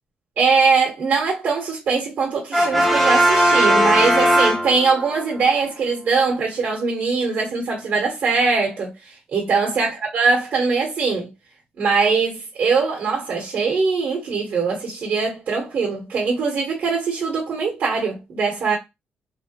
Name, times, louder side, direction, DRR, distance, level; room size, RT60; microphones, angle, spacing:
voice 1, 0.4-11.3 11.8-18.8, right 4 dB, 60° right, 1.2 m, -21 dB
Brass instrument, 2.5-5.2, right 1 dB, ahead, 0.7 m, -17 dB
3.3 x 2.2 x 2.9 m
cardioid pair, 120°, 3 cm